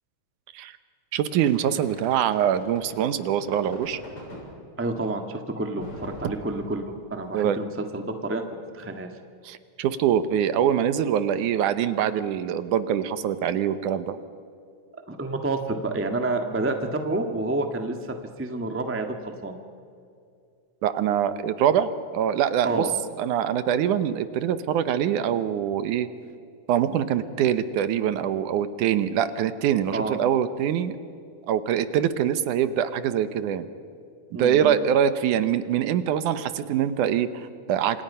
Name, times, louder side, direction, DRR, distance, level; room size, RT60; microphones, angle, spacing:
voice 1, 1.1-4.0 7.3-7.6 9.4-14.2 20.8-22.9 23.2-26.1 26.7-31.0 31.5-33.7 34.3-38.0, right 9 dB, 75° right, 12 dB, 2.4 m, -24 dB
sound 1, 1.3-4.5 5.8-7.2, equal, 40° left, 7.7 m, -42 dB
voice 2, 4.8-6.8 7.1-8.4 8.7-9.1 15.1-19.6 22.6-22.9 29.9-30.2 34.3-34.8, right 2 dB, 20° right, 5 dB, 0.3 m, -29 dB
28.0 x 27.0 x 5.6 m, 2.4 s
omnidirectional pair, 3.8 m